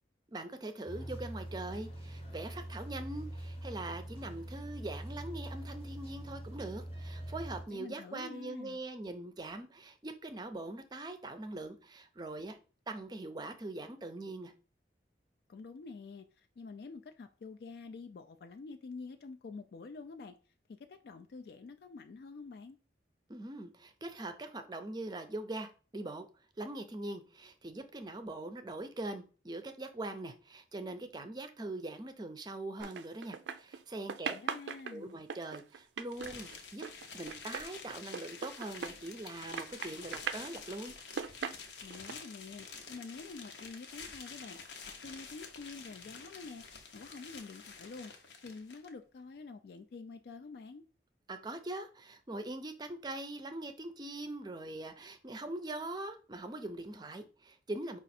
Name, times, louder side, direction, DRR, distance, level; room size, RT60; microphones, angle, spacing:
voice 1, 0.3-12.6 12.9-14.5 23.3-26.3 26.6-34.3 34.9-36.8 37.1-40.9 51.3-58.0, right 2 dB, 25° right, 8 dB, 0.5 m, -42 dB
sound 1, 0.9-7.6, right 1 dB, 35° left, 0.8 m, -43 dB
voice 2, 7.7-8.8 15.5-20.4 20.7-22.8 34.2-35.2 41.8-44.6 45.0-48.1 48.4-50.8, left 4 dB, 60° left, 7 dB, 0.3 m, -47 dB
sound 2, 32.8-33.8 34.1-39.3 39.5-40.5 41.0-42.1, right 6 dB, 85° right, 0.4 m, -40 dB
sound 3, 36.1-48.9, left 5 dB, 80° left, 0.8 m, -49 dB
5.0 x 2.4 x 4.2 m, 0.37 s
head